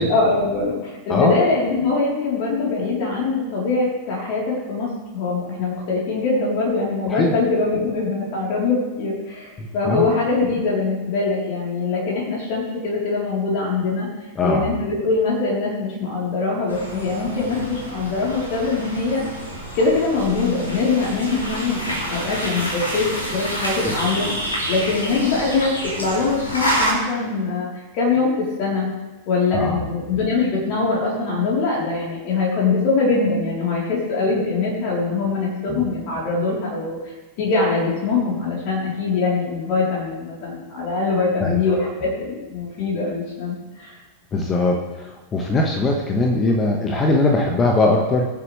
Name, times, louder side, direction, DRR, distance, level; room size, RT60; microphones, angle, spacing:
voice 1, 0.0-14.1 14.4-19.2 19.7-25.7 26.0-27.7 27.9-28.3 28.6-28.9 29.3-37.0 37.4-43.9, left 4 dB, 45° left, -4 dB, 3.8 m, -22 dB
voice 2, 9.6-10.1 14.3-14.7 23.8-23.9 29.5-29.9 35.7-35.9 41.4-41.8 44.3-48.3, left 2 dB, 25° left, 1 dB, 1.5 m, -21 dB
sound 1, 16.7-26.9, right 1 dB, 75° left, 3.9 m, -28 dB
22.5 x 7.8 x 3.4 m, 1.2 s
figure-of-eight pair, 90°, 0 cm